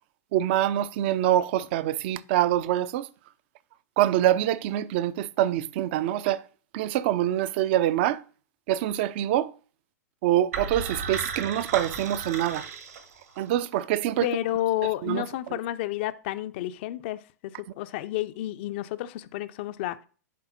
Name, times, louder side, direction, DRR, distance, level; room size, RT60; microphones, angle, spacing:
voice 1, 0.3-3.1 4.0-6.4 6.7-8.2 8.7-9.5 10.2-12.7 13.4-14.3 15.0-15.6, right 12 dB, 40° right, 0.4 m, -25 dB
sound 1, 10.5-13.5, right 5 dB, 60° right, 1.3 m, -34 dB
voice 2, 14.2-17.2 17.8-20.0, left 14 dB, 40° left, 0.4 m, -30 dB
11.0 x 4.1 x 2.6 m
figure-of-eight pair, 100°, 9 cm